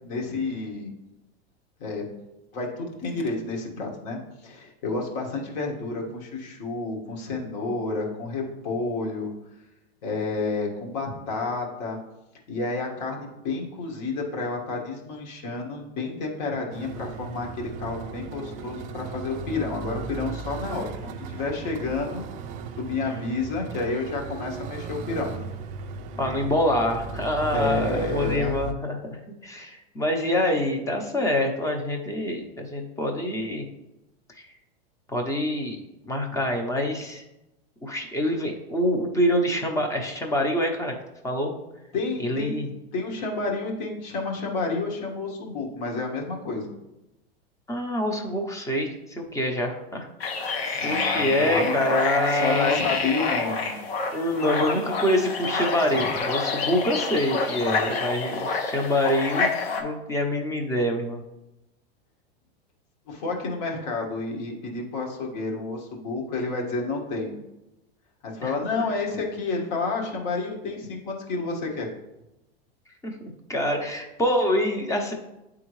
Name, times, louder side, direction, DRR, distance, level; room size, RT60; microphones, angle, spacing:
voice 1, 0.0-0.9 1.8-2.0 2.5-9.3 10.0-12.0 12.5-22.2 22.8-25.4 27.5-28.6 41.9-42.6 42.9-46.7 50.7-51.9 52.3-53.7 63.1-67.4 68.2-71.9, left 3 dB, 55° left, -1 dB, 1.7 m, -30 dB
sound 1, 16.7-28.7, right 5 dB, 25° right, 0.3 m, -36 dB
voice 2, 26.2-33.6 34.4-34.5 35.1-35.8 36.0-37.2 37.8-40.9 41.2-41.5 42.2-42.7 47.7-50.1 50.8-52.8 54.1-61.2 68.4-68.5 73.0-75.1, left 1 dB, 10° left, 2 dB, 0.7 m, -26 dB
sound 2, 50.2-59.8, left 4 dB, 75° left, 1.1 m, -28 dB
8.9 x 3.6 x 3.2 m, 0.95 s
hypercardioid pair, 130°, 31 cm